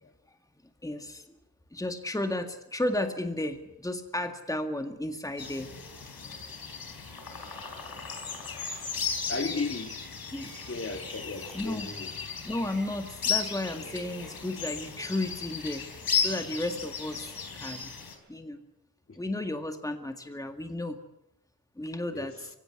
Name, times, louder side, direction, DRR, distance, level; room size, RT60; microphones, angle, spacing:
voice 1, 0.8-1.4 1.7-5.7 10.3-10.7 11.5-11.9 12.4-17.9 18.3-18.6 19.2-21.0 21.8-22.5, left 1 dB, 10° left, 1.9 m, -33 dB
sound 1, 5.4-18.1, left 6 dB, 85° left, 4.2 m, -35 dB
voice 2, 9.3-10.0 10.7-12.1 19.1-19.2 22.1-22.4, left 3 dB, 40° left, 2.0 m, -35 dB
23.5 x 16.5 x 9.6 m
wide cardioid pair, 105°, 35 cm